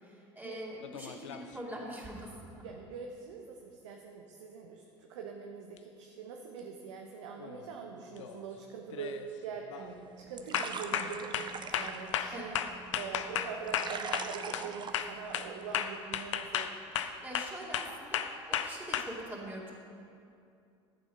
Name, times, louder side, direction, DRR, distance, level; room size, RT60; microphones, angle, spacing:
voice 1, 0.0-2.7 12.3-12.5 17.0-19.7, right 1 dB, 15° right, -4 dB, 2.4 m, -44 dB
sound 1, 0.8-1.5 5.8-5.9 7.4-7.7 8.1-8.4 8.9-9.3 9.7-9.9 10.5-14.7 14.9-19.0, left 9 dB, 75° left, 0.6 m, -34 dB
voice 2, 2.6-12.6 13.0-16.8, right 6 dB, 70° right, 2 dB, 0.9 m, -43 dB
sound 2, 9.8-15.8, right 5 dB, 30° right, 0.7 m, -44 dB
13.5 x 7.3 x 5.5 m, 2.5 s
figure-of-eight pair, 70°, 16 cm